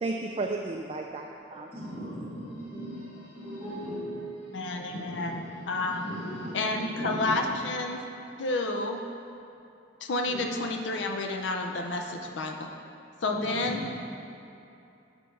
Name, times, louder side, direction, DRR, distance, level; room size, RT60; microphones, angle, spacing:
voice 1, 0.0-2.0, right 3 dB, 30° right, 1 dB, 0.3 m, -34 dB
voice 2, 1.5-7.5 10.3-10.4 13.3-13.8, equal, 30° left, -13 dB, 1.4 m, -38 dB
voice 3, 4.5-6.1 6.5-8.0 8.4-9.0 10.0-12.7 13.2-14.0, left 2 dB, 70° left, 3 dB, 0.5 m, -30 dB
6.4 x 4.4 x 5.4 m, 2.8 s
head